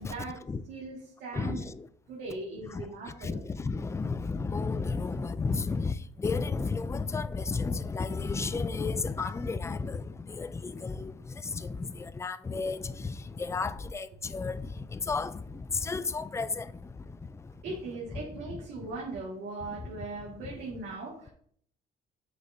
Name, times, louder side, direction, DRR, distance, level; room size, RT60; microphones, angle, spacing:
voice 1, 0.0-0.4 0.7-1.7 2.1-3.4 17.6-21.3, right 3 dB, 80° right, 1.9 m, -39 dB
voice 2, 1.3-1.9 2.7-17.7 18.1-18.2 19.8-19.9 20.4-20.5, left 4 dB, 15° left, 0.3 m, -33 dB
8.0 x 6.1 x 2.7 m
cardioid pair, 110°, 17 cm